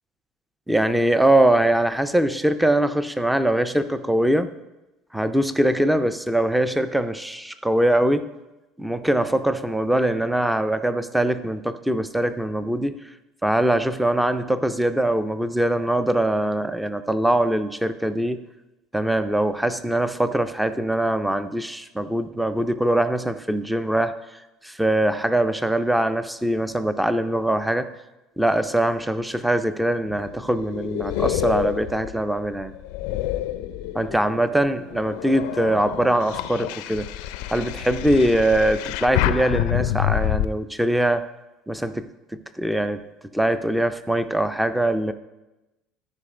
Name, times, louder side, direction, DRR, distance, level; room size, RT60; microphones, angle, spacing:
voice 1, 0.7-4.5 5.1-8.3 8.8-12.9 13.4-18.4 18.9-24.1 24.6-27.9 28.4-32.7 33.9-37.1 37.5-41.2 41.7-42.1 42.6-43.0 43.3-45.1, right 1 dB, ahead, 11 dB, 0.4 m, -22 dB
sound 1, 30.0-34.3 34.8-40.5, left 13 dB, 80° left, 0.4 m, -28 dB
13.0 x 4.9 x 5.1 m, 1.0 s
cardioid pair, 160°, 0 cm